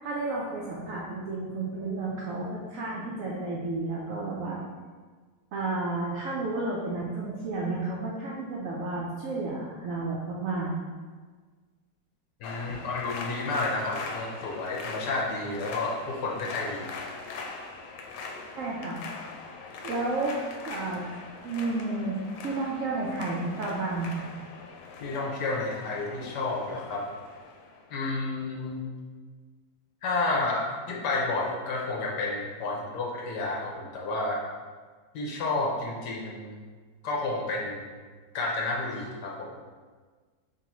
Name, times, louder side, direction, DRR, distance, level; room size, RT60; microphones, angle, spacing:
voice 1, 0.0-4.6 5.5-10.7 18.5-19.0 19.8-21.2 21.4-22.2 22.4-24.2, right 3 dB, 80° right, -4 dB, 0.7 m, -31 dB
sound 1, 12.4-27.9, left 4 dB, 85° left, 1.3 m, -41 dB
voice 2, 12.4-16.9 25.0-27.0 27.9-28.8 30.0-34.4 35.1-36.6 37.0-37.9 38.3-39.6, left 2 dB, 70° left, -3 dB, 1.2 m, -31 dB
4.0 x 3.5 x 3.0 m, 1.5 s
omnidirectional pair, 2.1 m